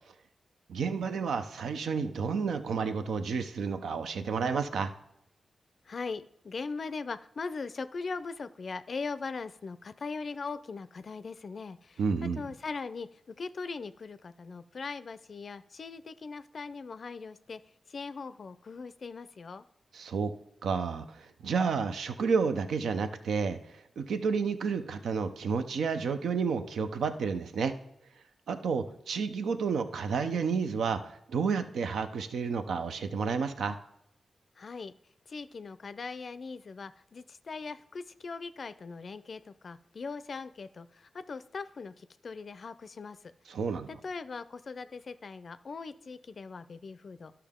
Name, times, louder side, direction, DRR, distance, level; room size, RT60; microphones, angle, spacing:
voice 1, 0.7-4.9 12.0-12.4 19.9-20.3 20.6-23.6 24.0-27.7 28.5-31.0 31.3-33.8 43.5-43.9, right 5 dB, 90° right, 9 dB, 0.6 m, -30 dB
voice 2, 5.8-17.6 17.9-19.6 34.6-34.9 35.3-43.3 43.9-47.3, left 4 dB, 55° left, 13 dB, 0.4 m, -40 dB
12.0 x 5.6 x 3.6 m, 0.76 s
cardioid pair, 70°, 0 cm